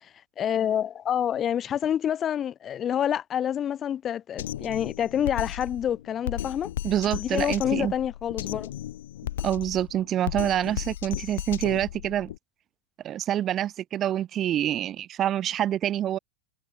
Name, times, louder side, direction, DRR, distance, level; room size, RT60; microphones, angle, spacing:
voice 1, 0.4-6.7 7.2-8.7, left 9 dB, 25° left, 1.0 m, -27 dB
Drum kit, 4.4-12.4, left 12 dB, 60° left, 0.9 m, -35 dB
voice 2, 6.8-7.9 9.4-12.3 13.0-16.2, right 11 dB, 30° right, 1.0 m, -26 dB
figure-of-eight pair, 90°, 0 cm